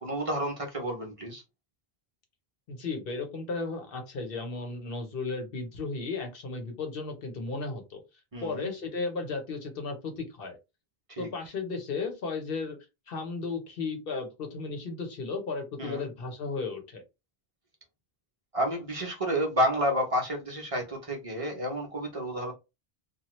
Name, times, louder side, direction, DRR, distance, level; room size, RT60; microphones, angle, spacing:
voice 1, 0.0-1.4 8.3-8.7 11.1-11.3 15.8-16.1 18.5-22.5, equal, 35° right, 0.8 m, -30 dB
voice 2, 2.7-8.0 8.4-10.6 11.2-12.8 13.1-17.0, left 4 dB, 65° left, 1.0 m, -34 dB
2.8 x 2.3 x 3.0 m
omnidirectional pair, 1.0 m